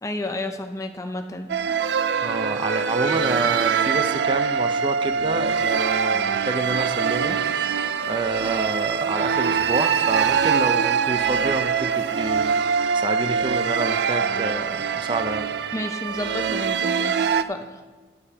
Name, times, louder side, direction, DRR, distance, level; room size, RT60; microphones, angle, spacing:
voice 1, 0.0-1.5 15.7-17.8, left 1 dB, 20° left, 6 dB, 0.6 m, -31 dB
sound 1, 1.5-17.4, right 7 dB, 75° right, 0.4 m, -23 dB
voice 2, 2.2-7.4 8.0-12.5 12.9-15.5, right 2 dB, 30° right, 7 dB, 0.6 m, -28 dB
14.5 x 11.0 x 2.9 m, 1.4 s
head